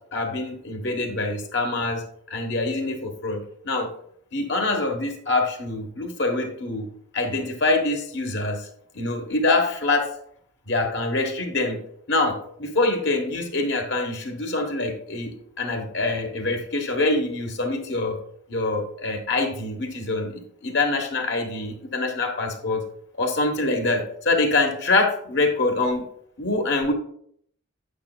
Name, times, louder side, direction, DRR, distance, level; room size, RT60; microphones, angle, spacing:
voice 1, 0.1-2.0 2.3-3.9 4.3-6.9 7.1-8.7 8.9-10.1 10.7-11.8 12.1-18.2 18.5-22.8 23.2-26.0 26.4-26.9, left 2 dB, 60° left, 3 dB, 1.3 m, -25 dB
8.5 x 7.8 x 2.4 m, 0.66 s
head